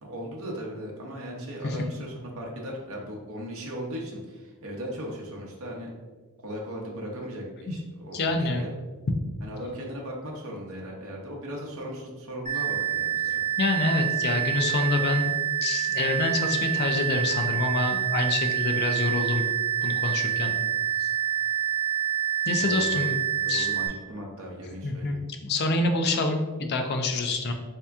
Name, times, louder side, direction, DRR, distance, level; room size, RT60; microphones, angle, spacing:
voice 1, 0.0-5.9 6.4-8.7 9.4-13.2 20.4-20.6 22.5-23.1 23.3-25.2, equal, 65° right, -1 dB, 0.7 m, -37 dB
voice 2, 8.1-8.6 13.3-15.3 15.6-19.4 19.8-20.5 21.0-21.1 22.5-23.1 23.5-23.7 24.8-25.2 25.4-27.5, left 2 dB, 50° left, 5 dB, 0.4 m, -27 dB
sound 1, 12.5-23.9, right 10 dB, 30° right, 0.6 m, -27 dB
3.4 x 2.8 x 3.4 m, 1.3 s
head